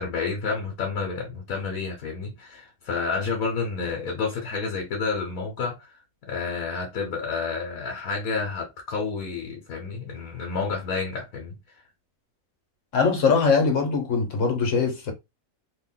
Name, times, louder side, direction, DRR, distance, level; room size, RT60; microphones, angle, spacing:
voice 1, 0.0-5.9 6.2-11.6, left 4 dB, 80° left, 1.5 m, -30 dB
voice 2, 12.9-15.1, left 5 dB, 65° left, 1.5 m, -22 dB
3.2 x 2.4 x 3.8 m
omnidirectional pair, 1.5 m